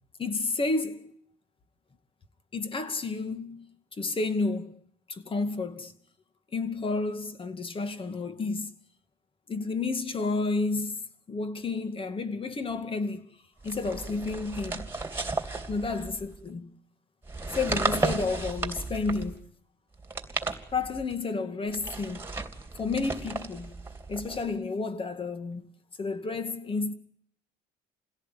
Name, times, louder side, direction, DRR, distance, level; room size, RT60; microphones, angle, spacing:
voice 1, 0.2-1.1 2.5-3.7 4.0-4.8 5.1-5.9 6.5-8.7 9.5-11.0 11.3-13.2 13.6-14.9 15.7-16.7 17.5-19.4 20.7-22.3 22.8-23.8 24.1-25.6 26.0-26.9, left 3 dB, 30° left, 2.2 m, -31 dB
sound 1, 13.6-16.4 17.2-19.4 20.0-21.1 21.7-24.5, right 3 dB, 10° right, 3.0 m, -34 dB
28.5 x 17.0 x 9.3 m
cardioid pair, 120°, 19 cm